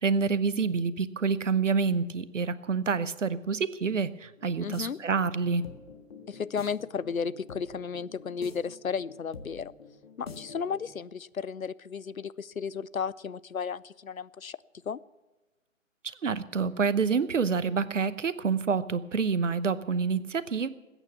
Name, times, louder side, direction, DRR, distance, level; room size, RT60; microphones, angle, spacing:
voice 1, 0.0-5.6 16.2-20.7, right 5 dB, 65° right, 16 dB, 1.0 m, -27 dB
sound 1, 4.4-10.9, left 4 dB, 45° left, 1.6 m, -47 dB
voice 2, 4.6-5.0 6.3-9.7 10.2-14.6 14.9-15.0, left 6 dB, 85° left, 19 dB, 0.6 m, -34 dB
20.5 x 9.1 x 7.1 m, 1.2 s
figure-of-eight pair, 135°, 41 cm